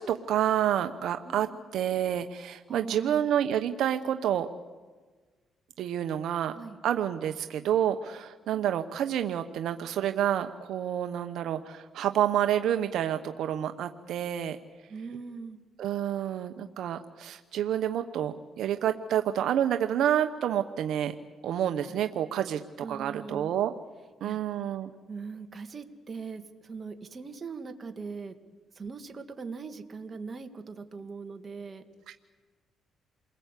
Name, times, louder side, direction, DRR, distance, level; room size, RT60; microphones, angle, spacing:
voice 1, 0.0-4.5 5.8-6.5 6.8-14.6 15.8-21.2 21.4-23.7 24.2-24.9 32.1-32.2, right 10 dB, 75° right, 7 dB, 1.0 m, -29 dB
voice 2, 1.3-1.6 2.7-3.3 6.5-6.8 8.5-8.7 14.9-15.6 21.9-22.0 22.8-23.5 24.2-24.4 25.1-28.3 28.8-31.8, right 4 dB, 35° right, 6 dB, 2.3 m, -41 dB
29.0 x 21.5 x 8.4 m, 1.4 s
cardioid pair, 90°, 0 cm